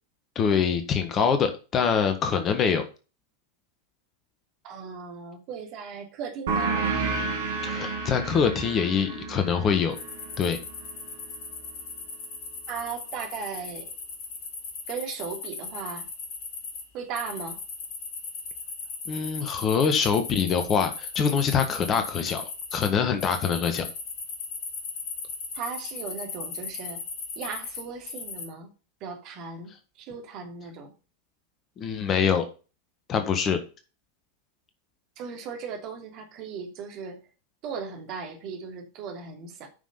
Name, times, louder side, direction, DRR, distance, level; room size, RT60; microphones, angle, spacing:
voice 1, 0.3-2.8 7.6-10.0 10.4-10.6 19.1-22.4 22.7-23.8 31.8-32.4 33.1-33.6, left 6 dB, 30° left, 8 dB, 1.7 m, -24 dB
voice 2, 4.6-6.9 12.7-13.9 14.9-16.1 16.9-17.6 25.5-27.0 27.3-28.7 29.0-30.9 35.2-37.2 37.6-39.7, right 6 dB, 40° right, 2 dB, 3.0 m, -37 dB
sound 1, 6.5-11.7, right 4 dB, 60° right, 3.2 m, -31 dB
sound 2, 9.9-16.8 17.1-22.9 23.2-28.4, left 4 dB, 45° left, 3.0 m, -37 dB
9.1 x 6.2 x 5.6 m, 0.33 s
figure-of-eight pair, 90°, 0 cm